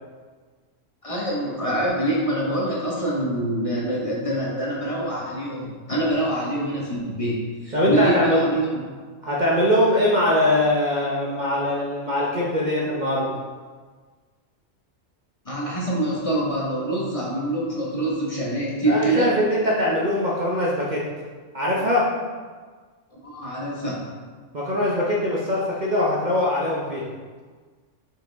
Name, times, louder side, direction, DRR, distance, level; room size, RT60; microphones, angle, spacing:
voice 1, 1.0-8.7 15.4-19.3 23.2-24.1, right 1 dB, 30° left, -5 dB, 1.3 m, -25 dB
voice 2, 7.7-8.5 9.2-13.3 18.9-21.1 21.5-22.2 24.5-27.1, left 1 dB, 40° right, -5 dB, 0.9 m, -22 dB
7.2 x 5.0 x 3.5 m, 1.5 s
omnidirectional pair, 1.3 m